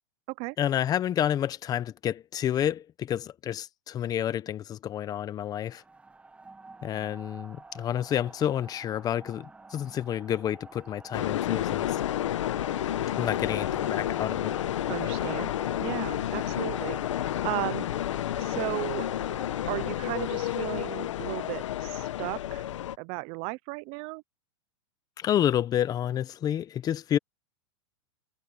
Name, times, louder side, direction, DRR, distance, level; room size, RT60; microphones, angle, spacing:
voice 1, 0.6-5.8 6.8-12.0 13.2-14.6 25.2-27.2, left 10 dB, 25° left, 1.0 m, -29 dB
sound 1, 5.6-20.6, right 3 dB, 10° right, 1.3 m, -48 dB
sound 2, 11.1-23.0, left 12 dB, 80° left, 1.3 m, -30 dB
voice 2, 14.9-15.5 15.8-17.8 18.4-19.1 19.6-22.6 23.0-24.2, right 26 dB, 40° right, 0.7 m, -35 dB
hypercardioid pair, 135°, 16 cm